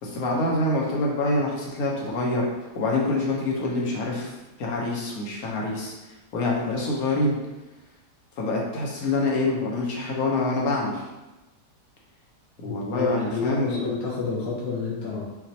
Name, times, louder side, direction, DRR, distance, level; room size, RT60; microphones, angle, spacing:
voice 1, 0.0-2.5 2.7-5.9 6.3-7.4 8.4-11.0 12.6-13.9, left 2 dB, 60° left, -2 dB, 1.3 m, -26 dB
voice 2, 12.6-15.2, left 4 dB, 90° left, -4 dB, 1.5 m, -30 dB
5.9 x 2.5 x 2.8 m, 1.1 s
omnidirectional pair, 1.9 m